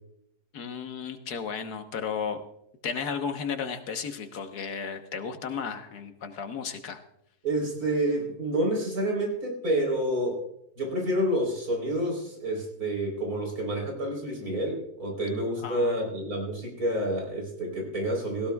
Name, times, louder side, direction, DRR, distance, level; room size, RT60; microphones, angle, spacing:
voice 1, 0.5-2.4 2.8-7.0 15.6-16.1, left 6 dB, 80° left, 7 dB, 1.7 m, -34 dB
voice 2, 7.4-10.4 10.8-18.5, right 1 dB, 65° right, 1 dB, 4.5 m, -28 dB
17.5 x 16.0 x 2.4 m, 0.78 s
omnidirectional pair, 1.6 m